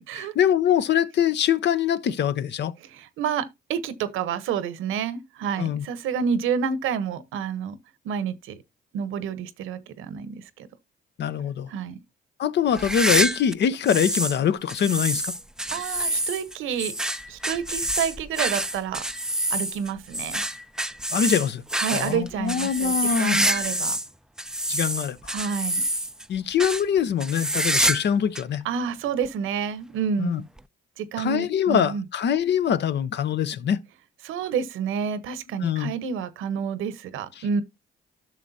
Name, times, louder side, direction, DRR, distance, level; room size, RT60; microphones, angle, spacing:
voice 1, 0.0-2.7 5.6-5.8 11.2-11.7 12.4-15.3 21.1-21.6 21.9-23.4 24.7-25.2 26.3-28.6 30.2-30.4 31.2-33.8 35.6-35.9, left 8 dB, 60° left, 0.7 m, -23 dB
voice 2, 2.8-7.8 8.0-8.6 8.9-10.7 11.7-12.0 15.7-16.9 17.3-19.0 19.5-20.4 21.8-24.0 25.3-25.8 28.6-30.4 31.0-32.0 34.2-37.6, right 7 dB, 90° right, 1.0 m, -29 dB
sound 1, 12.7-14.4 14.7-24.1 24.4-26.2 26.6-26.8 27.2-28.1 28.3-28.4 29.2-29.3 30.6-30.7, right 1 dB, 5° right, 0.4 m, -27 dB
12.0 x 6.5 x 2.7 m
cardioid pair, 90°, 20 cm